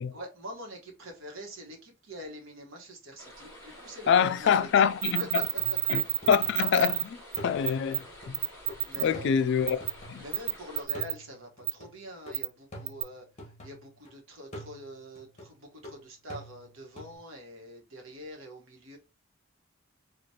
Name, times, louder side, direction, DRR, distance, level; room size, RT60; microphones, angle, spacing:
voice 1, 0.1-4.8 5.2-5.4 8.4-9.3 10.2-19.0, equal, 70° right, 1.2 m, -45 dB
sound 1, 3.2-10.9, left 1 dB, 10° left, 2.2 m, -49 dB
voice 2, 4.1-5.4 5.9-6.0 6.3-7.2 7.4-8.4 9.0-9.8 10.1-10.2, left 7 dB, 60° left, 0.3 m, -25 dB
sound 2, 5.0-7.0 7.3-7.4 7.6-8.0 8.3-9.0 9.7-9.9 10.3-11.1 11.7-11.8 12.3-12.5 12.9-13.0, right 15 dB, 50° right, 0.3 m, -28 dB
sound 3, 5.6-6.9 7.4-10.5 10.9-14.1 14.5-17.2, equal, 35° left, 1.3 m, -47 dB
4.7 x 2.4 x 2.8 m
head